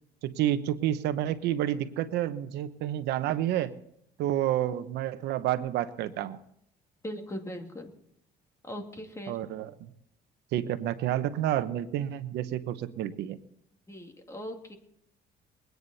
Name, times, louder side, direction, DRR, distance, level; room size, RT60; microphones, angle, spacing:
voice 1, 0.2-3.7 4.2-6.4 9.3-9.9 10.5-13.4, right 12 dB, 85° right, 12 dB, 0.9 m, -29 dB
voice 2, 7.0-7.9 8.6-9.4 13.9-14.8, equal, 15° left, 3 dB, 2.3 m, -39 dB
22.5 x 9.4 x 4.1 m, 0.73 s
cardioid pair, 110°, 17 cm